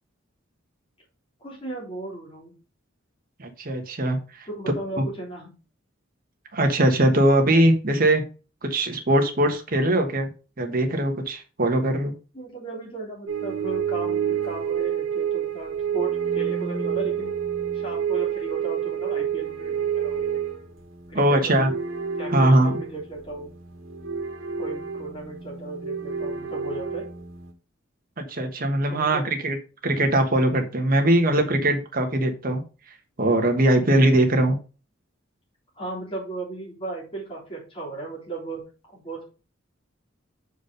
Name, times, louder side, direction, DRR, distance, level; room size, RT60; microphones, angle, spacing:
voice 1, 1.4-2.6 4.5-5.5 12.3-17.3 17.7-20.3 21.1-21.7 22.2-23.5 24.6-27.1 28.9-29.3 35.7-39.2, right 2 dB, 30° left, -4 dB, 3.4 m, -36 dB
voice 2, 3.4-4.2 6.5-8.2 8.6-10.3 10.6-12.1 21.1-21.7 22.3-22.7 28.2-29.6 29.8-32.6 33.2-34.6, right 1 dB, 45° right, 4 dB, 1.3 m, -21 dB
sound 1, 13.3-27.5, right 8 dB, 90° right, 1.5 m, -29 dB
5.3 x 4.9 x 5.3 m, 0.34 s
head